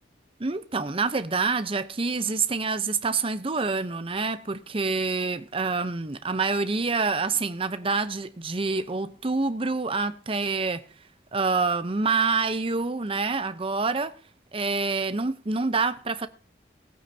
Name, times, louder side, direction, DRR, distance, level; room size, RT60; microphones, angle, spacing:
voice 1, 0.4-10.8 11.3-14.1 14.5-16.3, right 4 dB, 30° right, 0.8 m, -27 dB
19.5 x 8.9 x 2.8 m
head